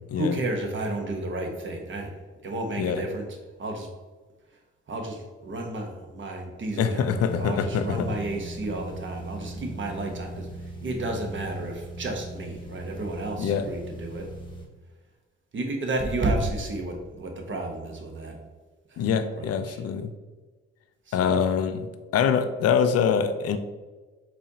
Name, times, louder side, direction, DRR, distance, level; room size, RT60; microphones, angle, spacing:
voice 1, 0.1-3.3 3.6-3.9 4.9-14.3 15.5-18.4 18.9-19.1 19.4-19.8 21.1-21.4, right 2 dB, 40° right, 2 dB, 0.9 m, -32 dB
voice 2, 6.8-8.2 13.4-13.7 19.0-20.1 21.1-21.9 22.1-23.6, left 7 dB, 55° left, 9 dB, 0.5 m, -24 dB
sound 1, 7.1-14.7, right 1 dB, 15° left, 1.1 m, -39 dB
4.1 x 2.7 x 2.7 m, 1.3 s
supercardioid pair, 55°, 29 cm